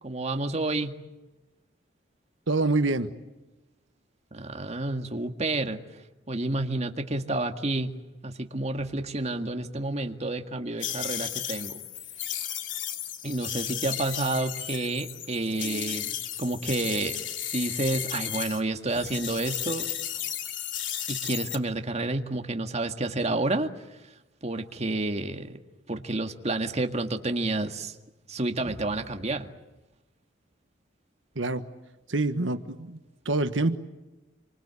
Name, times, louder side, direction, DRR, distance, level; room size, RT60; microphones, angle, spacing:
voice 1, 0.0-0.9 4.3-5.8 6.3-7.9 8.2-11.8 13.2-17.2 17.5-19.9 21.1-24.0 24.4-25.6 25.9-28.0 28.3-29.5, right 2 dB, 35° right, 5 dB, 1.9 m, -30 dB
voice 2, 2.5-3.1 31.3-31.6 32.1-33.0 33.2-33.8, right 2 dB, 90° right, 9 dB, 1.4 m, -26 dB
sound 1, 10.8-18.6 18.9-21.6, left 10 dB, 90° left, 2.9 m, -34 dB
27.5 x 25.0 x 8.3 m, 1.1 s
head